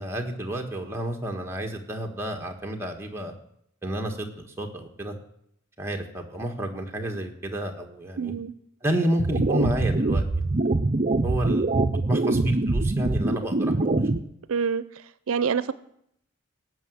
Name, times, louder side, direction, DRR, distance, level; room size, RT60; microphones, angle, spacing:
voice 1, 0.0-3.3 3.8-5.2 5.8-8.3 8.8-10.6 11.2-14.0, right 1 dB, 10° right, 1 dB, 1.6 m, -30 dB
voice 2, 8.2-8.5 14.5-14.8 15.3-15.7, right 6 dB, 85° right, 16 dB, 0.5 m, -26 dB
sound 1, 9.2-14.2, right 2 dB, 35° right, 0.6 m, -23 dB
18.0 x 6.1 x 8.0 m, 0.74 s
head